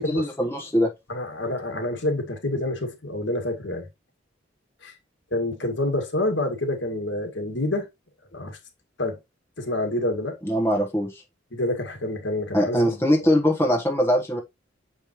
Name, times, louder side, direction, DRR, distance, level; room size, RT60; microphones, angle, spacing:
voice 1, 0.0-0.9 10.4-11.2 12.5-14.4, equal, 15° left, 1.3 m, -22 dB
voice 2, 1.1-3.9 4.8-4.9 5.3-7.9 8.3-8.6 9.0-9.2 9.6-10.4 11.5-13.4, left 1 dB, 70° left, 2.1 m, -28 dB
7.5 x 5.2 x 3.1 m
head